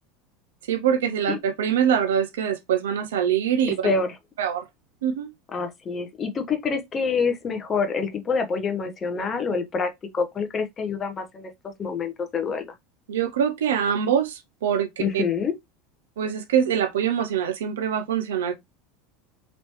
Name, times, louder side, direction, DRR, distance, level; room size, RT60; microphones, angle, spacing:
voice 1, 0.7-3.9 4.4-4.6 5.0-5.3 13.1-15.2 16.2-18.6, right 8 dB, 65° right, 0.5 m, -24 dB
voice 2, 5.5-11.5 11.8-12.7 15.0-15.5, left 5 dB, 30° left, 0.8 m, -26 dB
3.1 x 3.0 x 2.9 m
figure-of-eight pair, 75°, 0 cm